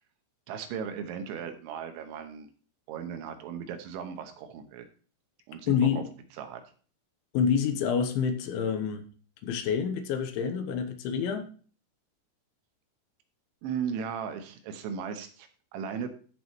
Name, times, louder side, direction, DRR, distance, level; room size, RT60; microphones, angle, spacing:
voice 1, 0.5-2.5 2.9-4.9 5.5-6.0 6.4-6.6 13.6-16.1, right 7 dB, 75° right, 7 dB, 3.2 m, -36 dB
voice 2, 5.7-6.1 7.3-9.1 9.4-11.5, left 7 dB, 80° left, 7 dB, 3.1 m, -27 dB
13.5 x 6.1 x 3.1 m, 0.40 s
omnidirectional pair, 5.8 m